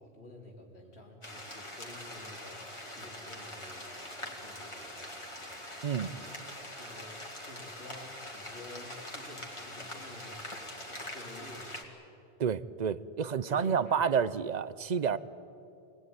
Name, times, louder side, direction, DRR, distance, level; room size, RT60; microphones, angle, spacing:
voice 1, 0.0-12.0 13.5-14.1, left 1 dB, 90° left, 0 dB, 3.7 m, -51 dB
sound 1, 1.2-11.8, left 1 dB, 30° left, 2.6 m, -43 dB
voice 2, 12.4-15.2, right 7 dB, 50° right, 17 dB, 0.7 m, -29 dB
25.0 x 19.0 x 9.5 m, 2.8 s
omnidirectional pair, 1.1 m